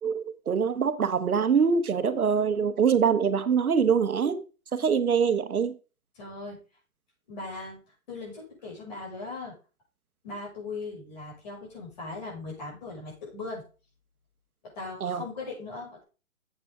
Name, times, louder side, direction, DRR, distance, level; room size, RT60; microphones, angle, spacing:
voice 1, 0.0-4.4 4.7-5.8 15.0-15.2, right 6 dB, 85° right, 1.2 m, -24 dB
voice 2, 6.1-6.6 7.3-7.8 8.1-9.5 10.2-13.6 14.8-16.0, left 3 dB, 30° left, 5.7 m, -39 dB
9.8 x 8.1 x 3.6 m
hypercardioid pair, 170°, 42 cm